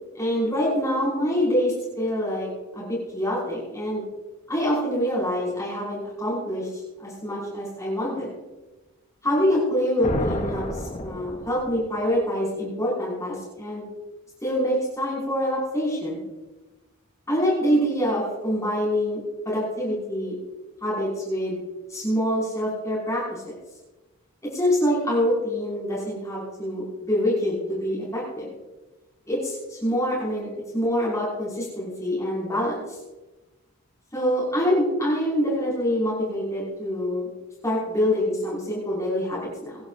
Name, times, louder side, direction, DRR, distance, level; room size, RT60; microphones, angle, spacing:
voice 1, 0.1-2.5 2.7-4.0 4.5-8.3 9.2-13.9 14.4-16.2 17.3-19.2 19.5-20.3 20.8-21.6 21.9-23.6 24.5-28.5 29.3-33.0 34.1-37.3 37.6-39.8, equal, 15° left, -6 dB, 5.5 m, -25 dB
sound 1, 10.0-12.0, left 1 dB, 30° left, 0.9 m, -31 dB
25.0 x 11.0 x 2.6 m, 1.1 s
head